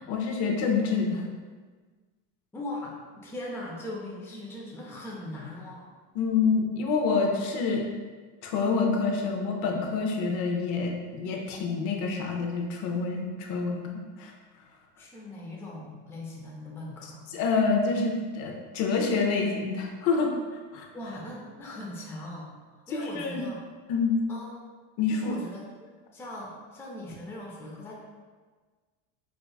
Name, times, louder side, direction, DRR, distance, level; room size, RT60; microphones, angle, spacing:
voice 1, 0.1-1.2 6.2-7.8 8.4-13.8 14.2-14.3 17.3-20.3 20.7-20.9 22.9-23.4 23.9-24.2 25.0-25.4, left 4 dB, 60° left, 1 dB, 0.6 m, -27 dB
voice 2, 2.5-5.9 15.0-17.3 20.9-23.6 24.3-24.5 25.1-27.9, left 1 dB, 10° left, -4 dB, 0.4 m, -40 dB
4.8 x 2.3 x 2.2 m, 1.4 s
cardioid pair, 135°, 32 cm